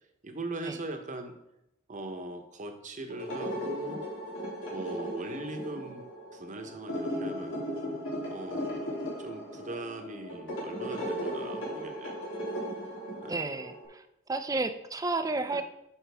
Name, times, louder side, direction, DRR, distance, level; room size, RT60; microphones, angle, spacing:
voice 1, 0.2-1.4 1.9-4.0 4.7-7.6 8.3-12.3 13.2-13.5 15.5-15.6, right 2 dB, 40° right, 6 dB, 0.9 m, -40 dB
sound 1, 3.1-13.9, equal, 85° left, 2.8 m, -37 dB
voice 2, 13.3-15.6, right 3 dB, 20° right, 10 dB, 0.5 m, -32 dB
9.1 x 5.8 x 3.4 m, 0.83 s
head